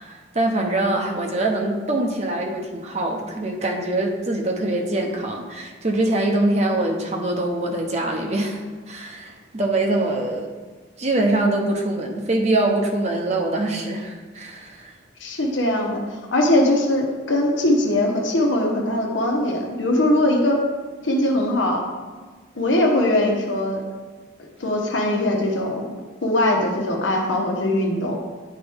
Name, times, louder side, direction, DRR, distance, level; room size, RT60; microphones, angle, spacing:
voice 1, 0.0-10.5 11.0-15.0, right 2 dB, 35° right, 1 dB, 0.9 m, -24 dB
voice 2, 15.2-20.6 21.0-21.8 22.5-23.8 24.6-25.9 26.2-28.2, left 1 dB, 85° left, 0 dB, 1.2 m, -21 dB
9.8 x 4.6 x 3.6 m, 1.4 s
head